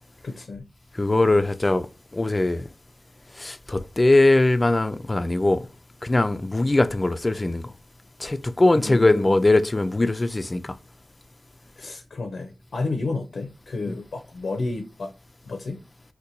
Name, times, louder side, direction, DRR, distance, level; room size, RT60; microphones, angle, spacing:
voice 1, 0.2-0.7 8.8-9.3 11.8-15.1 15.4-15.8, left 3 dB, 85° left, 0.5 m, -31 dB
voice 2, 1.0-1.9 2.1-2.7 3.4-5.6 6.0-7.7 8.2-10.7 13.9-14.0, left 2 dB, 35° left, 0.3 m, -21 dB
2.6 x 2.2 x 4.1 m
cardioid pair, 50°, 0 cm